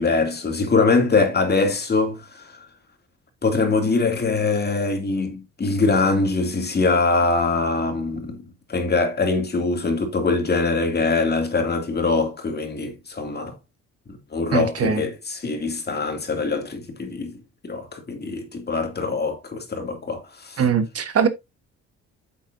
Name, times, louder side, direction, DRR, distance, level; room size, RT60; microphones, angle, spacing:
voice 1, 0.0-2.6 3.4-8.4 8.7-13.5 14.1-20.6, left 3 dB, 35° left, 2.7 m, -23 dB
voice 2, 14.5-15.0 20.6-21.3, right 7 dB, 50° right, 1.4 m, -21 dB
8.6 x 7.9 x 2.7 m
cardioid pair, 90°, 30 cm